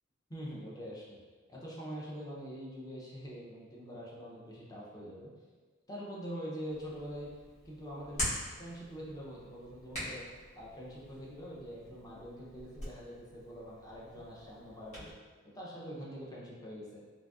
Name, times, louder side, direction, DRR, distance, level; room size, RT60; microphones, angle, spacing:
voice 1, 0.3-1.2 1.5-5.3 5.9-7.3 7.6-8.2 8.6-10.2 10.5-15.1 15.5-17.0, equal, 20° left, -5 dB, 0.6 m, -44 dB
Hands, 6.7-15.1, equal, 35° left, 1.2 m, -44 dB
3.8 x 2.6 x 2.3 m, 1.4 s
head